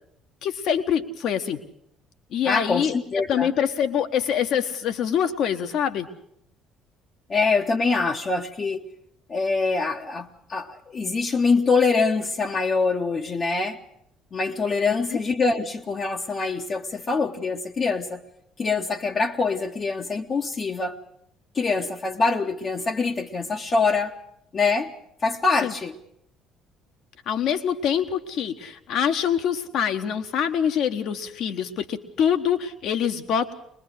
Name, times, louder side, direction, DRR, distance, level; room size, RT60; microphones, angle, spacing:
voice 1, 0.4-1.6 2.3-6.1 25.6-25.7 27.3-33.5, left 8 dB, 55° left, 8 dB, 1.4 m, -25 dB
voice 2, 2.4-3.5 7.3-8.8 9.3-13.8 14.3-18.2 18.6-21.0 21.5-24.1 24.5-24.9 25.2-25.9, left 4 dB, 35° left, 0 dB, 1.2 m, -24 dB
22.5 x 21.5 x 6.5 m, 0.76 s
figure-of-eight pair, 50°, 0 cm